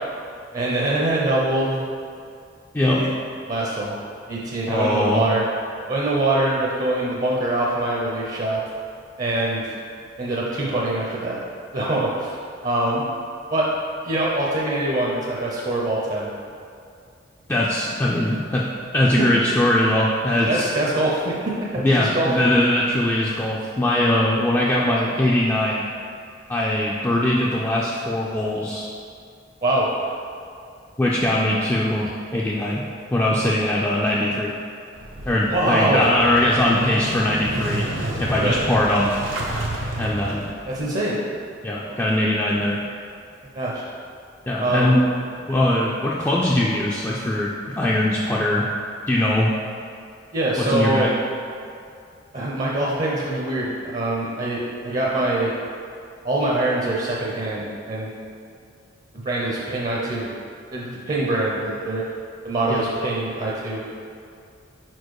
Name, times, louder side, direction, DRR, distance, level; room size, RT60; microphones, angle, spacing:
voice 1, 0.5-1.9 2.8-3.1 3.5-4.0 4.3-5.4 5.9-8.6 9.2-9.7 10.2-11.4 11.7-12.4 12.6-13.0 13.5-13.7 14.0-16.3 19.2-19.3 20.5-22.3 29.6-30.1 35.5-36.0 38.4-38.6 40.7-41.2 43.5-43.9 44.6-45.0 50.3-51.1 52.3-55.5 56.2-58.1 59.2-60.3 60.7-62.0 62.4-63.8, right 2 dB, 40° right, -4 dB, 0.6 m, -24 dB
voice 2, 4.7-5.2 17.5-18.7 18.9-20.7 21.8-25.9 26.5-28.9 31.0-32.8 33.1-34.5 35.3-37.9 38.2-39.1 40.0-40.5 41.6-42.8 44.5-45.1 45.5-48.7 49.1-49.5 50.6-51.1 62.7-62.8, left 1 dB, 15° left, -5 dB, 0.3 m, -21 dB
Motorcycle / Engine starting, 34.9-40.8, right 1 dB, 85° right, 0.9 m, -30 dB
5.0 x 4.5 x 4.7 m, 2.4 s
head